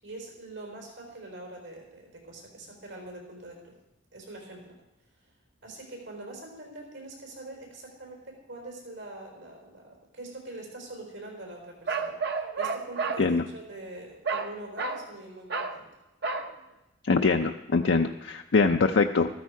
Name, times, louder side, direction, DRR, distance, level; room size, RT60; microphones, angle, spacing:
voice 1, 0.0-3.7 4.1-4.7 5.6-15.8, right 2 dB, 80° right, 1 dB, 4.2 m, -44 dB
Bark, 11.9-13.2 14.3-14.5 14.8-15.1 15.5-15.8 16.2-16.5, right 4 dB, 55° right, 0.9 m, -30 dB
voice 2, 17.0-19.3, left 4 dB, 65° left, 5 dB, 0.5 m, -23 dB
14.5 x 13.5 x 4.7 m, 0.97 s
head